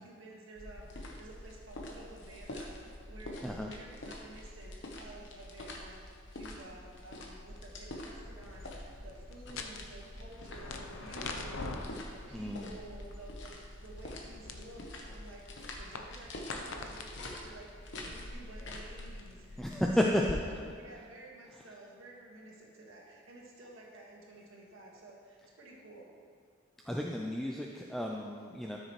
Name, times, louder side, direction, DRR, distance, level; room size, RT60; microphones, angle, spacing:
voice 1, 0.0-6.0 6.3-26.1, right 2 dB, 75° right, -2 dB, 1.7 m, -52 dB
sound 1, 0.6-19.3, left 1 dB, 60° left, 1.0 m, -46 dB
sound 2, 8.4-20.3, left 3 dB, 80° left, 0.7 m, -46 dB
voice 2, 12.3-12.7 19.6-20.2 26.8-28.8, left 1 dB, ahead, -1 dB, 0.4 m, -32 dB
13.0 x 6.5 x 3.2 m, 2.3 s
head